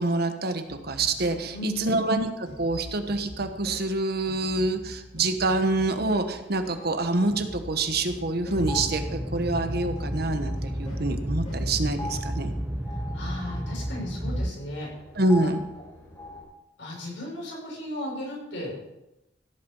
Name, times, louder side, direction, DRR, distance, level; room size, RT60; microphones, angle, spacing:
voice 1, 0.0-12.5 15.2-15.6, right 2 dB, 60° right, 8 dB, 1.3 m, -26 dB
sound 1, 0.7-12.5, left 1 dB, 35° left, 6.2 m, -44 dB
voice 2, 1.5-2.0 12.9-14.9 15.4-15.5 16.8-18.7, left 1 dB, 75° left, -3 dB, 6.4 m, -36 dB
sound 2, 6.7-16.4, left 2 dB, 20° left, 5.6 m, -43 dB
sound 3, 8.5-14.5, right 1 dB, 10° right, 0.5 m, -31 dB
16.0 x 8.6 x 5.5 m, 0.92 s
head